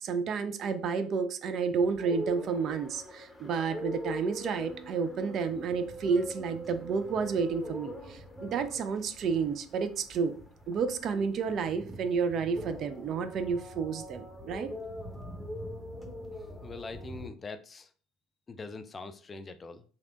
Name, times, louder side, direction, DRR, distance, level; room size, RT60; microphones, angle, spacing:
voice 1, 0.0-10.3 10.7-14.7, right 5 dB, 50° right, 0.4 m, -31 dB
sound 1, 1.7-17.3, equal, 5° left, 0.8 m, -43 dB
voice 2, 16.6-17.9 18.5-19.8, left 3 dB, 30° left, 0.3 m, -43 dB
3.2 x 2.8 x 2.5 m
figure-of-eight pair, 60°, 0 cm